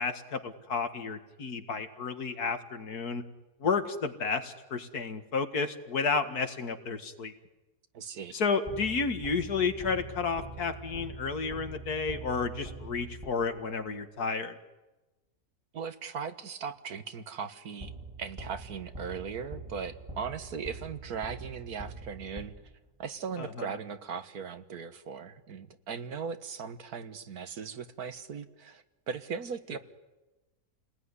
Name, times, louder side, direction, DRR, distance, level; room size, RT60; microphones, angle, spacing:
voice 1, 0.0-3.2 3.6-7.3 8.3-14.5 23.4-23.7 29.7-29.8, left 5 dB, 85° left, 8 dB, 2.4 m, -31 dB
voice 2, 7.9-8.3 15.7-17.9 18.2-22.5 23.0-29.8, right 6 dB, 75° right, 10 dB, 1.9 m, -38 dB
sound 1, 8.7-13.8 17.8-23.0, right 2 dB, 20° right, 1.8 m, -44 dB
29.5 x 20.0 x 9.9 m, 1.1 s
omnidirectional pair, 1.6 m